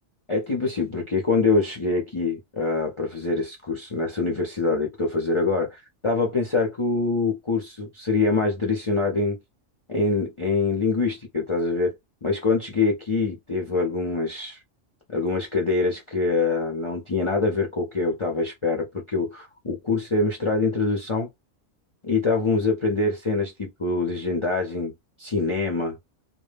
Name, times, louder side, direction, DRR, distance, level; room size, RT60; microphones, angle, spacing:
voice 1, 0.3-9.4 9.9-11.9 12.2-14.6 15.1-21.3 22.0-24.9 25.2-26.0, left 3 dB, 40° left, 0.4 m, -24 dB
2.2 x 2.1 x 3.2 m
omnidirectional pair, 1.3 m